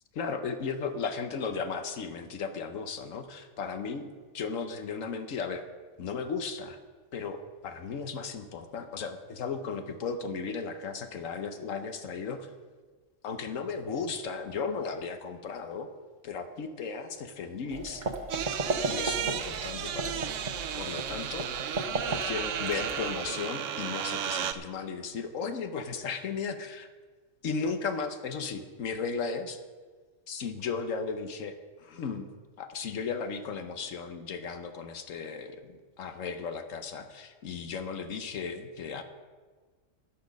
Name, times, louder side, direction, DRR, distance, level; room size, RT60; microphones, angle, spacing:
voice 1, 0.1-5.6 6.0-6.8 7.1-12.5 13.2-15.9 16.2-18.0 18.8-20.3 20.8-21.5 22.1-26.9 27.4-29.6 30.3-32.3 32.6-39.0, left 5 dB, 90° left, 8 dB, 1.3 m, -35 dB
sound 1, 17.7-23.2, right 3 dB, 40° right, 1.0 m, -35 dB
sound 2, 18.3-24.5, right 9 dB, 75° right, 1.0 m, -34 dB
12.5 x 10.5 x 5.2 m, 1.4 s
omnidirectional pair, 1.3 m